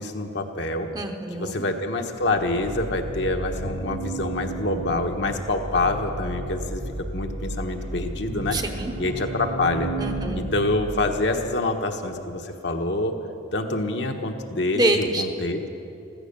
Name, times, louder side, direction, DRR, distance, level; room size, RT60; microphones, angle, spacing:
voice 1, 0.0-0.9 1.3-6.8 7.1-8.6 9.0-9.9 10.3-13.1 13.5-15.7, left 2 dB, 65° left, 4 dB, 1.2 m, -26 dB
voice 2, 0.9-1.5 8.5-8.9 10.0-10.5 14.7-15.2, right 1 dB, 20° right, 5 dB, 0.8 m, -25 dB
sound 1, 2.2-11.6, right 1 dB, 75° right, 2.9 m, -33 dB
15.0 x 14.5 x 6.7 m, 2.8 s
head